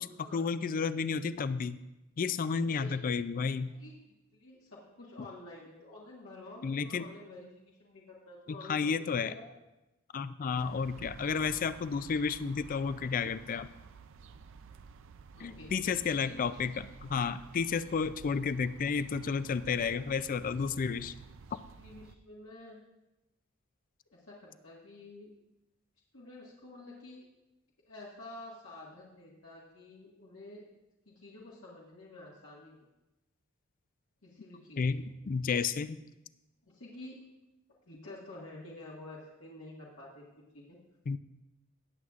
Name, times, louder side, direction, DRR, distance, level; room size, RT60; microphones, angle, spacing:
voice 1, 0.0-1.8 2.2-3.7 6.6-7.1 8.5-9.3 10.1-13.7 15.4-21.1 34.8-36.0 41.1-41.2, left 5 dB, 40° left, 13 dB, 0.4 m, -32 dB
voice 2, 2.6-3.0 3.8-8.9 9.2-9.5 15.3-16.5 21.8-22.8 24.1-25.3 26.1-27.3 27.9-30.6 31.1-32.8 34.2-34.8 36.6-37.2 37.9-40.2 40.5-40.8, left 2 dB, 70° left, -6 dB, 1.7 m, -49 dB
sound 1, 10.6-22.1, right 5 dB, 65° right, 0.5 m, -52 dB
17.5 x 7.8 x 2.4 m, 0.97 s
head